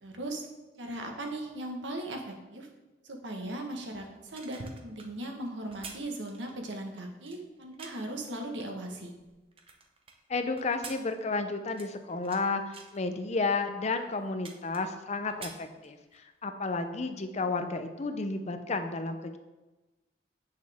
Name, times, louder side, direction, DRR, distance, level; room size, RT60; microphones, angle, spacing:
voice 1, 0.0-0.5 0.8-2.7 3.0-9.1, right 1 dB, 80° right, 2 dB, 1.4 m, -38 dB
sound 1, 4.2-8.2 8.7-10.2 10.6-12.4 12.7-13.0 13.6-13.7 14.0-15.0 15.3-16.3 16.7-16.8, right 5 dB, 30° right, 0.8 m, -48 dB
voice 2, 10.3-19.4, left 3 dB, 40° left, 7 dB, 0.6 m, -32 dB
8.4 x 6.5 x 3.5 m, 1.1 s
head